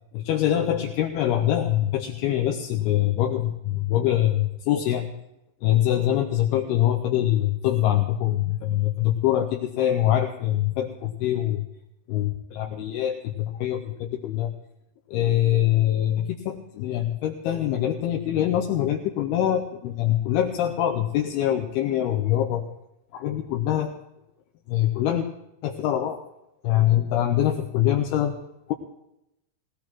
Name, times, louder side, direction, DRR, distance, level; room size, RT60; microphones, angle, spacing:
voice 1, 0.1-5.1 5.6-11.6 12.1-14.5 15.1-22.6 23.1-23.9 24.7-25.3 25.6-26.2 26.6-28.4 28.7-28.8, left 12 dB, 80° left, 3 dB, 2.5 m, -24 dB
18.5 x 18.0 x 3.0 m, 0.87 s
omnidirectional pair, 4.9 m